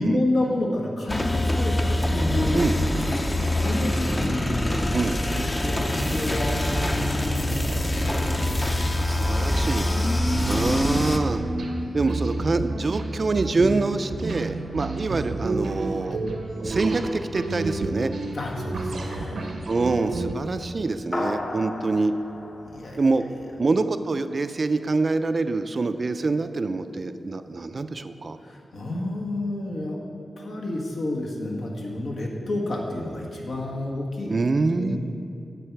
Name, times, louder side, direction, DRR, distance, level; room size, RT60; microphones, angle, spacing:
voice 1, 0.0-2.8 3.5-8.5 16.1-16.2 18.3-19.5 22.6-23.0 23.3-23.4 28.4-30.0 30.4-34.3 34.8-35.0, left 1 dB, 75° left, -2 dB, 1.4 m, -30 dB
sound 1, 1.1-11.2, left 1 dB, 25° left, 0.6 m, -24 dB
voice 2, 9.0-9.9 10.5-11.4 11.9-16.2 16.6-18.1 19.7-22.1 23.0-23.2 23.6-28.4 34.3-35.0, right 3 dB, 45° right, 10 dB, 0.4 m, -25 dB
sound 2, 10.7-20.3, right 2 dB, 85° right, 0.8 m, -30 dB
sound 3, 21.1-23.8, left 2 dB, 45° left, 1.0 m, -34 dB
9.9 x 6.9 x 4.6 m, 2.6 s
wide cardioid pair, 90°, 0 cm